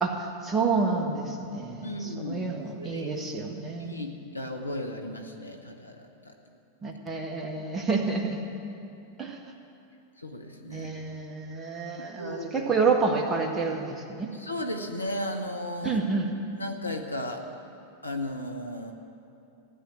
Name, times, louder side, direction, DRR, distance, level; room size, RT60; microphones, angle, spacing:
voice 1, 0.0-4.1 6.8-8.4 9.2-9.4 10.7-14.3 15.8-16.3, right 4 dB, 15° right, 1 dB, 1.8 m, -29 dB
voice 2, 1.8-3.1 3.8-6.3 10.2-10.9 12.2-12.7 14.3-16.0 16.6-17.4 18.0-18.9, left 1 dB, 80° left, 4 dB, 1.2 m, -35 dB
15.5 x 9.9 x 8.2 m, 2.7 s
figure-of-eight pair, 90°, 0 cm